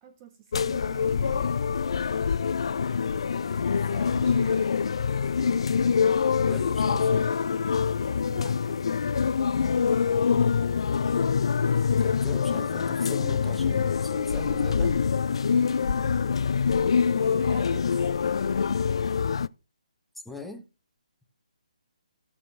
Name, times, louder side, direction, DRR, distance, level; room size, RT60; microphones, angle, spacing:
voice 1, 0.0-1.6 3.6-4.9 8.3-8.8 17.2-18.1, right 8 dB, 20° right, 0.8 m, -47 dB
sound 1, 0.5-19.5, left 6 dB, 50° left, 0.4 m, -25 dB
voice 2, 6.4-7.3 11.9-15.0 20.2-20.6, left 2 dB, ahead, 1.1 m, -40 dB
16.5 x 6.9 x 2.5 m
figure-of-eight pair, 140°, 4 cm